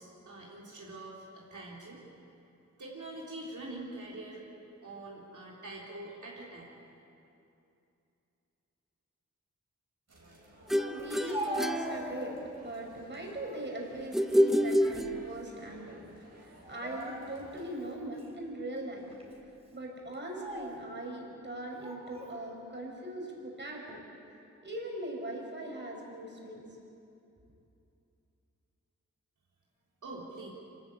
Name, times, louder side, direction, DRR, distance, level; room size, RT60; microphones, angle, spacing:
voice 1, 0.0-2.0 2.8-4.4 4.8-6.7 30.0-30.5, right 2 dB, 75° right, -4 dB, 3.8 m, -44 dB
sound 1, 10.1-17.9, right 1 dB, 60° right, 5.4 m, -57 dB
sound 2, 10.7-12.6 14.1-15.7, equal, ahead, 0.6 m, -28 dB
voice 2, 10.8-12.3 12.6-16.0 16.4-19.1 19.4-24.0 24.6-26.6, right 1 dB, 35° right, -1 dB, 4.9 m, -40 dB
Speech, 11.0-12.6 13.1-13.7 14.2-15.4 15.6-15.8 16.6-17.6 18.2-18.3 19.1-19.4 20.1-20.8 21.7-22.4, right 1 dB, 20° right, 3.5 m, -41 dB
26.5 x 14.0 x 8.7 m, 2.7 s
wide cardioid pair, 105°, 30 cm